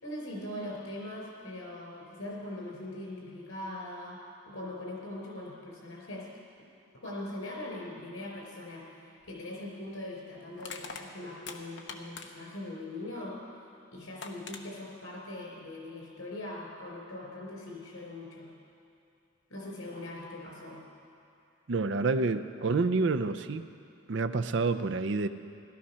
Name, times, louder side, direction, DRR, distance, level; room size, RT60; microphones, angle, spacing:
voice 1, 0.0-4.2 4.5-6.3 7.0-13.4 13.9-18.5 19.5-20.8, left 1 dB, 80° left, -1 dB, 4.2 m, -41 dB
Crushing, 9.2-9.4 10.6-12.6 13.7-13.8 14.2-14.6, left 5 dB, 55° left, 1.0 m, -43 dB
voice 2, 21.7-23.7 24.1-25.3, right 3 dB, 55° right, 10 dB, 0.5 m, -28 dB
15.5 x 13.0 x 5.6 m, 2.6 s
head